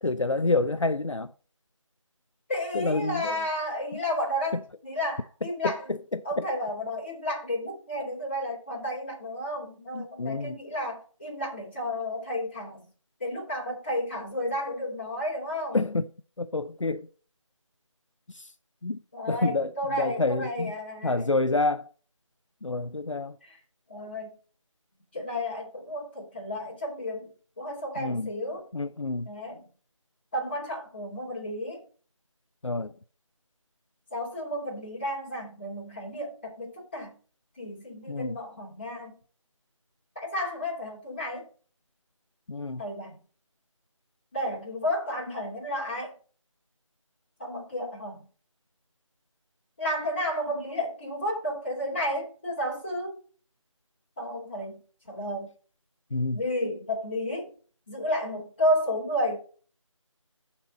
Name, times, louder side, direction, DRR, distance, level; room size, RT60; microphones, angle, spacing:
voice 1, 0.0-1.3 2.7-3.3 5.6-6.4 9.9-10.6 15.7-16.0 16.4-17.1 18.3-18.5 18.8-19.0 19.3-19.7 20.0-20.7 21.0-21.9 22.6-23.4 28.0-28.3 28.7-29.3 32.6-32.9 38.1-38.4 42.5-42.8 56.1-56.4, left 3 dB, 65° left, 0.6 m, -28 dB
voice 2, 2.5-6.0 6.2-12.8 13.2-15.8 19.1-21.4 23.4-23.6 23.9-24.3 25.1-27.3 27.6-28.6 29.2-29.7 30.3-31.8 34.1-37.1 37.6-39.1 40.1-41.5 42.8-43.2 44.3-46.1 47.4-48.3 49.8-53.2 54.2-54.8 55.1-55.5 56.3-57.5 57.9-59.4, left 1 dB, 20° left, 2.8 m, -32 dB
12.0 x 4.4 x 4.1 m
figure-of-eight pair, 170°, 17 cm